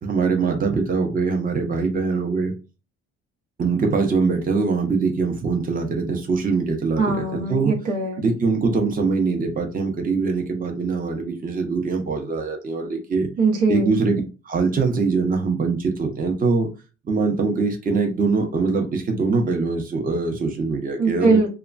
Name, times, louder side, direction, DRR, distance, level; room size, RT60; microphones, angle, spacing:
voice 1, 0.0-2.5 3.6-7.7 8.2-13.3 13.7-16.7 17.1-21.4, right 4 dB, 30° right, 2 dB, 0.7 m, -23 dB
voice 2, 7.0-8.3 13.4-13.9 21.0-21.5, right 3 dB, 75° right, 2 dB, 0.9 m, -21 dB
2.9 x 2.2 x 2.5 m, 0.31 s
cardioid pair, 90°, 30 cm